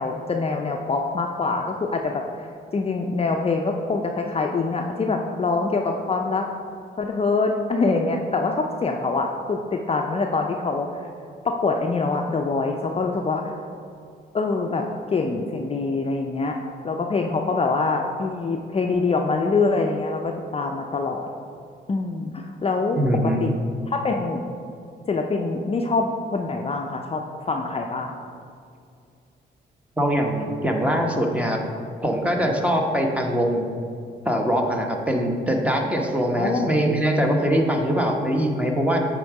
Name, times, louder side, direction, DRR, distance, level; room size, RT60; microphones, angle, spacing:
voice 1, 0.0-2.2 2.7-6.5 7.0-10.9 11.4-13.5 14.3-16.6 16.8-21.3 21.9-23.0 23.4-23.5 23.9-24.4 25.1-28.1 36.4-36.7, left 3 dB, 30° left, 2 dB, 0.5 m, -24 dB
voice 2, 23.0-23.4 30.0-31.6 32.0-33.7 34.2-39.0, equal, 5° right, 1 dB, 1.0 m, -22 dB
8.3 x 3.7 x 4.8 m, 2.3 s
cardioid pair, 75°, 20 cm